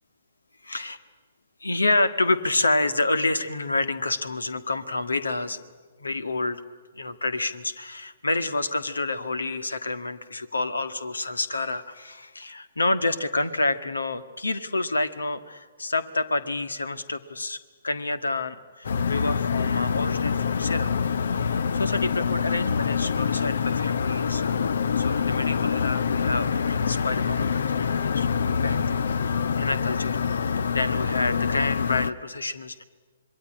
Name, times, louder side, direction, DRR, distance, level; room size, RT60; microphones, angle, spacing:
voice 1, 0.7-1.0 1.6-5.6 6.0-6.6 6.9-17.6 17.8-20.9 21.7-24.6 25.0-30.2 30.7-32.8, left 2 dB, 75° left, 12 dB, 1.7 m, -28 dB
sound 1, 18.8-32.1, left 6 dB, 60° left, 0.8 m, -25 dB
26.5 x 22.0 x 9.9 m, 1.4 s
figure-of-eight pair, 125°, 0 cm